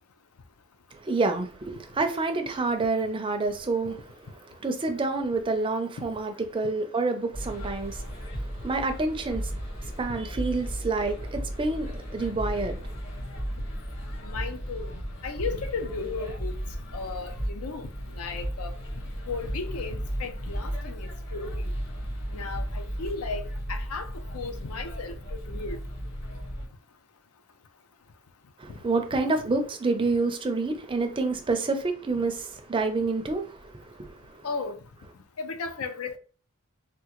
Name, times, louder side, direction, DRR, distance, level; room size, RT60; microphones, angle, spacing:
voice 1, 1.0-4.0 4.6-8.1 8.6-9.5 10.0-12.8 28.6-33.6 34.0-34.1, right 3 dB, 25° right, 0.4 m, -28 dB
sound 1, 7.3-26.7, equal, 55° left, 1.4 m, -35 dB
voice 2, 14.2-14.9 15.2-16.6 16.9-18.7 19.3-21.7 22.3-23.4 23.7-25.1 25.5-25.8 34.4-34.8 35.4-36.2, left 4 dB, 85° left, 0.5 m, -35 dB
3.6 x 2.3 x 2.9 m
head